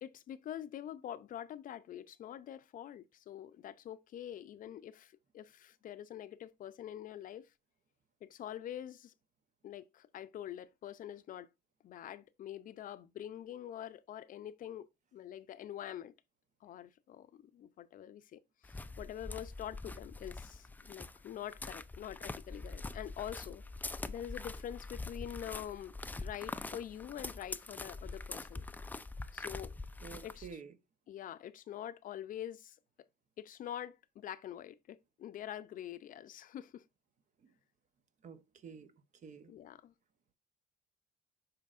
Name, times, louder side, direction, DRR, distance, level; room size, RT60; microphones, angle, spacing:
voice 1, 0.0-7.4 8.2-9.1 9.6-11.5 11.8-16.1 16.6-23.6 24.1-28.6 29.3-29.7 30.2-30.6 31.1-32.8 33.4-36.8 39.5-39.9, left 11 dB, 55° left, 0.6 m, -45 dB
sound 1, 18.6-30.5, left 3 dB, 10° left, 0.4 m, -44 dB
voice 2, 30.0-30.7 38.2-38.9 39.2-39.5, right 6 dB, 45° right, 1.0 m, -49 dB
11.5 x 4.4 x 2.5 m
cardioid pair, 110°, 17 cm